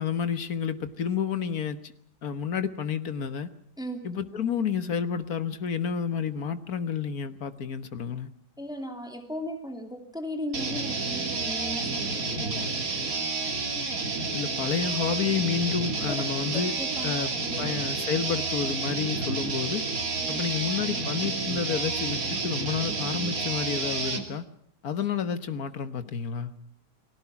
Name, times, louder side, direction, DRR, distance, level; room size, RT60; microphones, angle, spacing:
voice 1, 0.0-1.9 2.2-3.5 4.0-8.3 14.3-16.7 17.0-17.3 17.6-19.8 20.3-24.4 24.8-26.5, left 7 dB, 60° left, 11 dB, 1.8 m, -30 dB
voice 2, 8.6-12.7 16.1-16.2 16.8-17.2 17.4-17.7 20.2-20.4, equal, ahead, 5 dB, 2.9 m, -36 dB
sound 1, 10.5-24.2, right 3 dB, 55° right, 2.9 m, -30 dB
30.0 x 21.0 x 6.0 m, 0.65 s
omnidirectional pair, 1.8 m